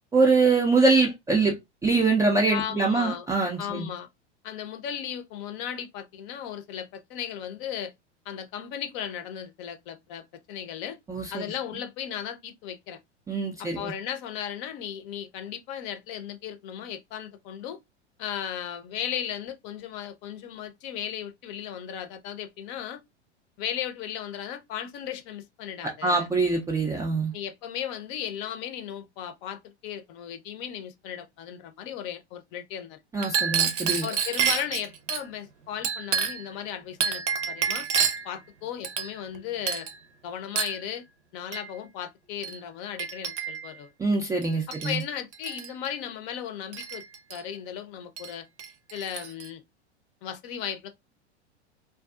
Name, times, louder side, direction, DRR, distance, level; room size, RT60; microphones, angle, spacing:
voice 1, 0.1-1.5 1.8-3.9 11.1-11.5 13.3-13.9 25.8-27.3 33.1-34.1 44.0-45.0, right 3 dB, 10° right, 0.3 m, -24 dB
voice 2, 2.5-3.3 3.6-4.1 4.4-7.9 8.3-11.0 11.3-13.0 13.6-17.8 18.2-23.0 23.6-26.3 27.3-33.0 34.0-37.9 38.2-39.9 40.2-41.0 41.3-43.9 44.7-47.0 47.3-48.5 48.9-49.6 50.2-50.9, left 9 dB, 45° left, 0.6 m, -36 dB
Chink clink, 33.2-35.2 35.8-36.5 37.0-38.3 38.8-39.4 39.7-40.0 40.6-40.8 41.5-41.7 42.4-42.6 43.0-43.7 44.4-45.0 45.3-45.7 46.7-47.4 48.2-48.3 48.6-49.5, right 7 dB, 80° right, 0.6 m, -29 dB
2.5 x 2.3 x 2.3 m
hypercardioid pair, 100°, 34 cm